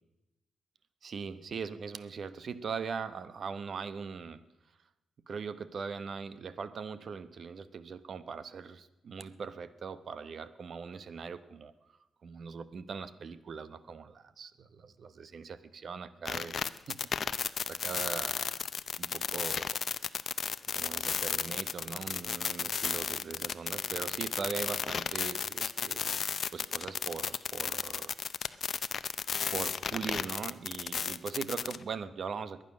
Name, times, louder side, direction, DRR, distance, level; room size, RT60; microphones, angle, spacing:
voice 1, 1.0-4.4 5.3-11.7 12.2-17.4 17.7-18.5 19.0-19.8 20.7-26.0 26.5-28.1 29.4-32.6, right 5 dB, 55° right, 14 dB, 0.9 m, -40 dB
sound 1, 16.3-31.8, left 6 dB, 55° left, 0.6 m, -33 dB
22.0 x 9.3 x 6.3 m, 0.96 s
cardioid pair, 100°, 0 cm